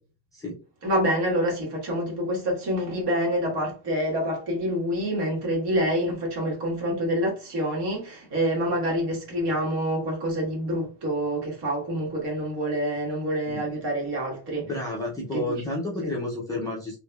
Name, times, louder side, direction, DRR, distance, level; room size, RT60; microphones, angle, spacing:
voice 1, 0.8-14.7 15.3-15.6 16.0-16.1, equal, 55° right, 1.7 m, -27 dB
voice 2, 14.6-17.0, left 2 dB, 10° left, 0.5 m, -31 dB
3.3 x 3.0 x 2.3 m
cardioid pair, 175°, 48 cm